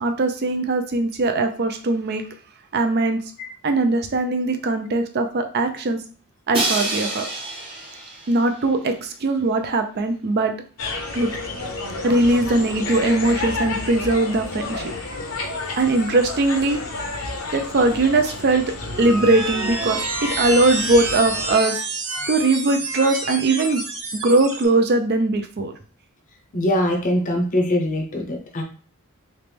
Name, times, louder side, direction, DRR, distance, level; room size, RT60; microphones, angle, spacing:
voice 1, 0.0-2.2 2.7-3.2 3.6-6.0 6.5-7.3 8.3-10.5 11.1-11.3 12.0-15.0 15.7-18.6 19.0-21.8 22.3-23.8 24.1-25.7, right 2 dB, 45° right, 6 dB, 0.4 m, -20 dB
Crash cymbal, 6.5-8.5, right 2 dB, 25° right, 0.8 m, -27 dB
sound 1, 10.8-21.5, left 3 dB, 60° left, 0.8 m, -31 dB
sound 2, 18.7-24.7, right 2 dB, 70° right, 1.1 m, -28 dB
voice 2, 26.5-28.6, left 1 dB, 35° left, 4 dB, 0.7 m, -22 dB
3.2 x 3.0 x 3.3 m, 0.42 s
head